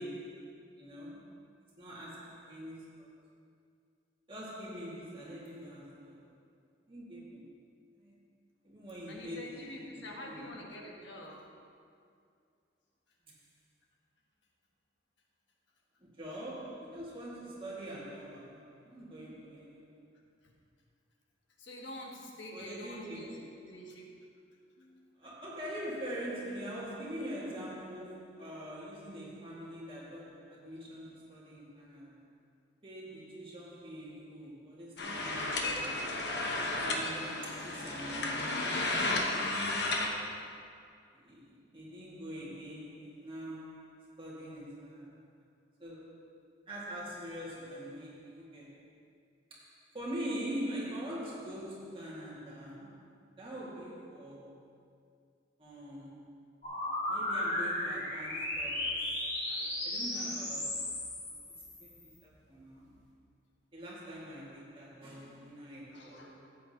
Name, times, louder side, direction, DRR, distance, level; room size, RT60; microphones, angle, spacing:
voice 1, 0.0-1.4 1.8-3.2 4.3-6.3 6.9-7.6 8.0-8.1 8.6-10.7 16.1-20.1 22.5-23.7 25.2-32.3 32.8-36.3 36.8-38.7 41.2-45.3 45.8-46.4 46.7-48.9 49.5-54.6 55.6-56.4 57.1-60.9 61.2-61.4 61.8-62.0 62.2-63.0 63.7-66.4, equal, 30° right, -6 dB, 2.0 m, -44 dB
voice 2, 9.1-11.4 21.6-23.3 23.6-24.1 24.8-25.1 65.9-66.4, left 1 dB, 80° left, -1 dB, 1.4 m, -46 dB
sound 1, 35.0-40.1, left 2 dB, 60° left, 1.1 m, -33 dB
sound 2, 56.6-62.1, left 1 dB, 40° left, 2.2 m, -35 dB
13.5 x 8.3 x 2.9 m, 2.3 s
head